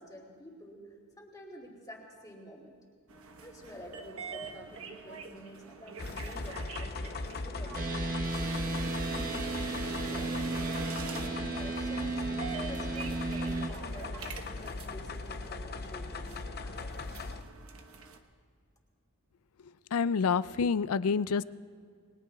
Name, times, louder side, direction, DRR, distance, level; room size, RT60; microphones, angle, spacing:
voice 1, 0.0-2.8 3.2-8.4 9.1-10.8 11.1-17.0, equal, 15° left, -2 dB, 2.6 m, -49 dB
sound 1, 3.1-18.2, right 4 dB, 70° right, 1.2 m, -45 dB
sound 2, 6.0-17.4, left 3 dB, 45° left, 0.7 m, -39 dB
sound 3, 7.7-13.7, right 3 dB, 40° right, 1.2 m, -34 dB
voice 2, 19.9-21.4, left 5 dB, 75° left, 16 dB, 0.4 m, -27 dB
29.0 x 21.0 x 2.3 m, 2.1 s
head